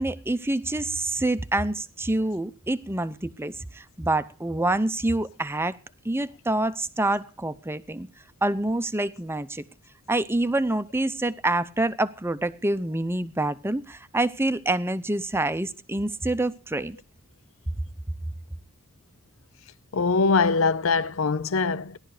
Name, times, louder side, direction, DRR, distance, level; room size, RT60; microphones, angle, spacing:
voice 1, 0.0-5.8 6.0-8.1 8.4-9.6 10.1-17.0, right 2 dB, 10° right, 0.6 m, -26 dB
voice 2, 19.9-22.0, left 4 dB, 70° left, 0.6 m, -22 dB
16.5 x 11.5 x 4.9 m
head